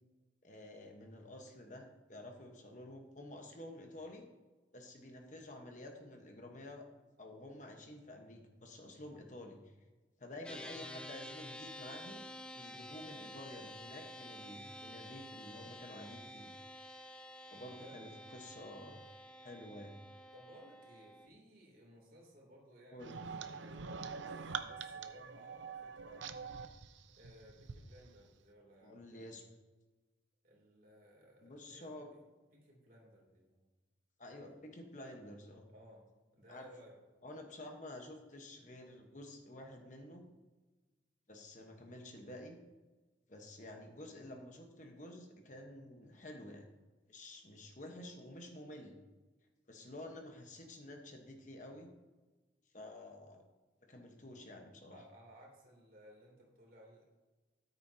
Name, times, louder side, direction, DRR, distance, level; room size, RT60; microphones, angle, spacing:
voice 1, 0.4-4.3 4.7-6.8 7.2-9.7 10.2-12.2 12.5-16.5 17.5-19.0 19.4-19.9 22.9-23.3 28.8-29.4 31.4-32.1 34.2-35.6 36.5-36.7 37.2-40.2 41.3-42.6 43.3-46.6 47.1-49.0 49.7-51.9 52.7-53.4 53.8-55.0, left 1 dB, 40° left, 3 dB, 1.2 m, -50 dB
sound 1, 10.4-21.3, equal, 5° left, 0.6 m, -50 dB
voice 2, 17.8-18.3 20.3-26.5 27.1-29.4 30.4-32.2 32.5-33.6 34.3-34.7 35.7-36.1 36.3-37.0 54.9-57.0, equal, 50° right, -2 dB, 3.0 m, -59 dB
sound 2, 23.0-27.8, right 6 dB, 80° right, 0.7 m, -45 dB
13.5 x 9.3 x 2.8 m, 1.2 s
head